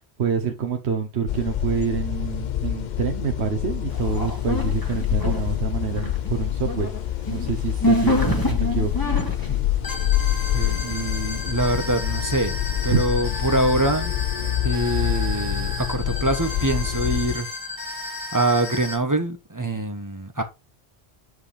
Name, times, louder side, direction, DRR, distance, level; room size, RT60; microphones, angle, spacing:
voice 1, 0.2-6.9 7.3-8.9 12.9-13.0, right 6 dB, 75° right, 1.3 m, -27 dB
sound 1, 1.3-17.4, left 12 dB, 55° left, 0.6 m, -26 dB
sound 2, 3.9-5.6 5.8-19.0, left 1 dB, 20° left, 2.1 m, -30 dB
voice 2, 10.5-12.6 12.8-14.1 14.6-17.5 17.9-20.4, right 2 dB, 20° right, 1.2 m, -25 dB
9.6 x 5.0 x 3.4 m
omnidirectional pair, 1.1 m